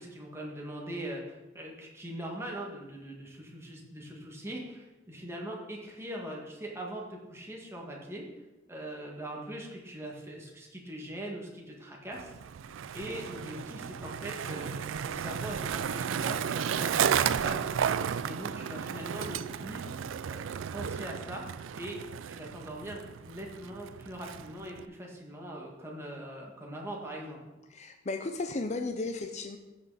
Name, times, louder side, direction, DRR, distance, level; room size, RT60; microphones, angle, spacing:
voice 1, 0.0-8.3 8.7-12.3 12.9-17.7 18.2-19.9 20.3-21.4 21.7-22.0 22.3-27.4, right 1 dB, 15° right, -2 dB, 1.9 m, -41 dB
Skateboard, 12.1-24.9, right 8 dB, 85° right, 0.4 m, -33 dB
voice 2, 27.7-29.6, left 3 dB, 35° left, 6 dB, 0.6 m, -34 dB
15.0 x 5.9 x 4.2 m, 1.1 s
head